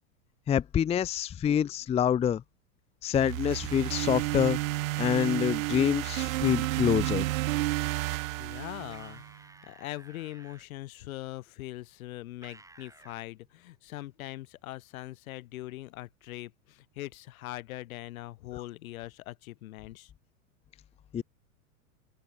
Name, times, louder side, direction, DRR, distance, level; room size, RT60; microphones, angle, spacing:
voice 1, 0.5-2.4 3.0-4.6 5.0-7.2 21.1-21.2, left 9 dB, 15° left, 0.6 m, -26 dB
sound 1, 3.1-9.3, right 19 dB, 70° right, 1.0 m, -31 dB
voice 2, 8.4-9.2 9.6-20.1, left 16 dB, 70° left, 4.2 m, -41 dB
sound 2, 8.9-10.6 12.4-13.3, right 2 dB, 5° right, 4.3 m, -54 dB
open air
hypercardioid pair, 125°, 43 cm